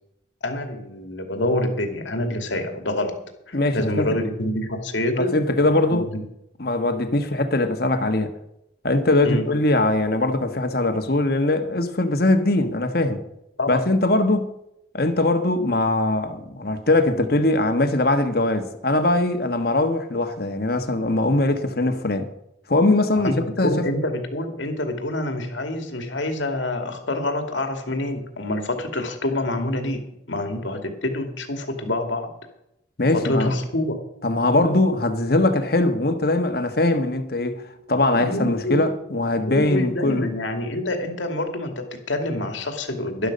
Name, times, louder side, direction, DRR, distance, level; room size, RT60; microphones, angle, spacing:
voice 1, 0.4-6.2 9.2-9.4 13.6-13.8 23.1-23.3 23.6-32.3 33.1-34.0 38.1-38.8 39.4-43.3, left 1 dB, 90° left, 2.4 m, -27 dB
voice 2, 3.5-4.1 5.2-6.1 6.6-8.3 8.8-13.2 13.7-14.5 14.9-22.3 22.7-23.8 33.0-33.5 34.2-37.6 37.9-40.3, left 2 dB, 55° left, 1.4 m, -21 dB
12.0 x 12.0 x 5.3 m
head